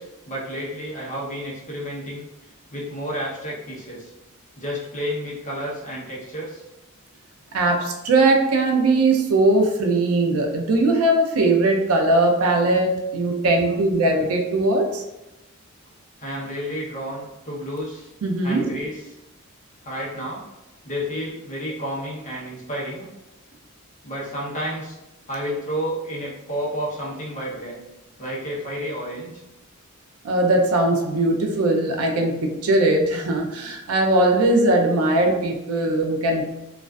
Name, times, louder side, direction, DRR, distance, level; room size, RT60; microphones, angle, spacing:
voice 1, 0.0-2.3 2.7-4.1 4.6-6.6 16.2-18.1 18.4-19.2 19.8-20.4 20.8-23.1 24.0-25.0 25.3-27.8 28.2-29.3, equal, 35° left, -5 dB, 0.7 m, -31 dB
voice 2, 7.5-15.0 18.2-18.6 30.2-36.5, right 2 dB, 70° right, 2 dB, 0.4 m, -20 dB
2.4 x 2.3 x 2.3 m, 0.98 s
head